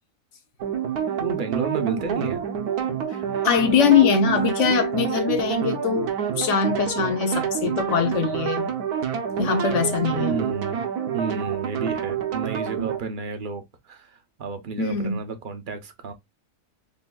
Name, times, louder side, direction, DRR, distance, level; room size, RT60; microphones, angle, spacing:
sound 1, 0.6-13.0, right 8 dB, 70° right, 1.3 m, -27 dB
voice 1, 1.2-2.4 10.1-10.9 11.1-16.1, right 5 dB, 50° right, 0.6 m, -31 dB
voice 2, 3.4-8.7 9.4-10.4 14.8-15.2, left 6 dB, 55° left, 1.1 m, -22 dB
6.7 x 2.5 x 2.3 m
omnidirectional pair, 1.7 m